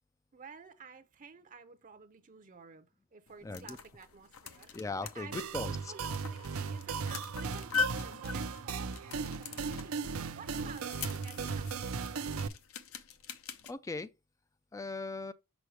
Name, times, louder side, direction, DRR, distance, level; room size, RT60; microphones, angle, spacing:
voice 1, 0.3-11.9, right 5 dB, 40° right, 0.6 m, -52 dB
sound 1, 3.3-13.7, left 6 dB, 75° left, 0.8 m, -42 dB
voice 2, 3.4-3.8 4.7-5.8 13.7-14.1 14.7-15.3, left 3 dB, 15° left, 0.3 m, -38 dB
sound 2, 5.3-12.5, right 5 dB, 75° right, 0.6 m, -37 dB
6.2 x 5.7 x 3.2 m
head